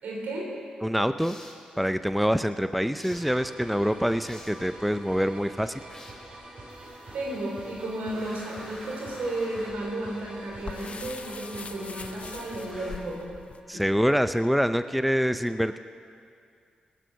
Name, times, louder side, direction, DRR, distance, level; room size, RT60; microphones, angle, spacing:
voice 1, 0.0-0.5 7.1-13.3 13.7-13.8, right 1 dB, 80° right, -2 dB, 3.9 m, -33 dB
voice 2, 0.8-1.4 1.8-5.8 13.7-15.8, equal, ahead, 11 dB, 0.5 m, -25 dB
sound 1, 1.2-1.7 3.0-3.4 4.3-4.7 5.9-6.3 8.1-9.9 10.8-11.2 12.7-13.2, left 1 dB, 20° left, 2.9 m, -47 dB
sound 2, 3.1-13.0, right 1 dB, 45° right, 4.9 m, -45 dB
sound 3, 6.7-13.6, left 4 dB, 50° left, 0.9 m, -45 dB
19.0 x 9.0 x 6.8 m, 2.4 s
supercardioid pair, 50°, 3 cm